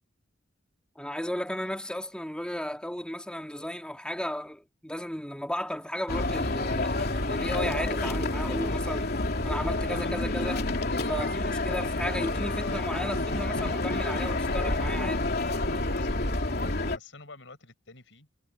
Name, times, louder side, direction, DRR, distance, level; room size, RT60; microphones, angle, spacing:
voice 1, 1.0-9.1 9.4-10.7 10.9-15.3, left 1 dB, 5° left, 2.1 m, -34 dB
sound 1, 6.1-17.0, left 2 dB, 55° left, 3.2 m, -29 dB
voice 2, 15.9-16.2 16.5-18.3, left 3 dB, 70° left, 7.7 m, -48 dB
head